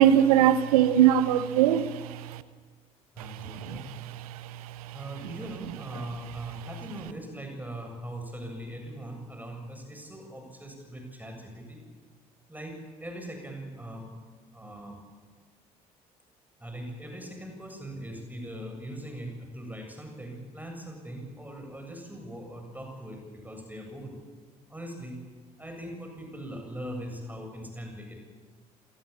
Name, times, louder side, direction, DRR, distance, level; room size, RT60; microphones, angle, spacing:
voice 1, 0.0-2.4 3.2-3.8 4.3-4.5 4.9-5.0, right 10 dB, 70° right, 1.0 m, -22 dB
voice 2, 3.1-3.9 4.9-11.8 12.5-14.1 14.5-15.0 16.6-24.1 24.7-25.2 25.6-28.2, right 1 dB, 10° right, 7.6 m, -40 dB
27.0 x 19.5 x 8.7 m
figure-of-eight pair, 50°, 20 cm